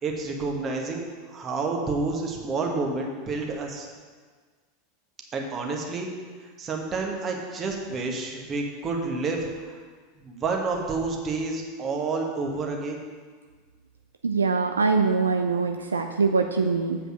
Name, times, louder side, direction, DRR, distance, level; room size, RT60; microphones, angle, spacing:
voice 1, 0.0-3.9 5.3-6.1 6.4-9.8 10.2-13.0, right 3 dB, 30° right, 1 dB, 1.5 m, -29 dB
voice 2, 14.2-17.0, right 4 dB, 75° right, 5 dB, 0.4 m, -23 dB
8.2 x 5.1 x 6.3 m, 1.5 s
figure-of-eight pair, 85°, 0 cm